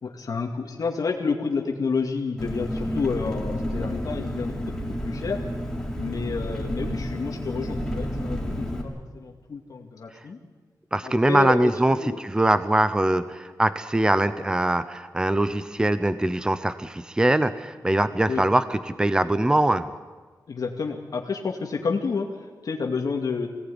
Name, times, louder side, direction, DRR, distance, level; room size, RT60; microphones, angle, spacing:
voice 1, 0.0-4.5 5.0-5.4 5.9-10.4 11.0-12.2 18.3-18.4 20.5-23.5, left 5 dB, 65° left, 1 dB, 2.2 m, -29 dB
Engine, 2.4-8.8, equal, 10° left, 4.2 m, -30 dB
voice 2, 10.9-19.9, right 1 dB, 10° right, 12 dB, 0.8 m, -22 dB
23.5 x 17.5 x 9.9 m, 1.4 s
wide cardioid pair, 140°, 7 cm